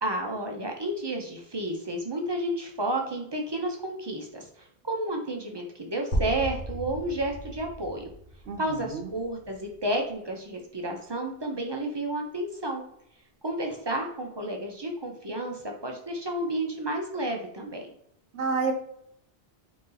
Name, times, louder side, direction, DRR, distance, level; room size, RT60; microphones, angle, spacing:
voice 1, 0.0-8.1 8.6-12.8 13.4-17.9, right 1 dB, 30° right, 2 dB, 0.6 m, -31 dB
sound 1, 6.1-10.1, equal, 45° left, 1.1 m, -35 dB
voice 2, 8.5-9.1 18.3-18.7, right 5 dB, 75° right, 5 dB, 0.9 m, -29 dB
4.0 x 2.8 x 3.8 m, 0.71 s
omnidirectional pair, 1.1 m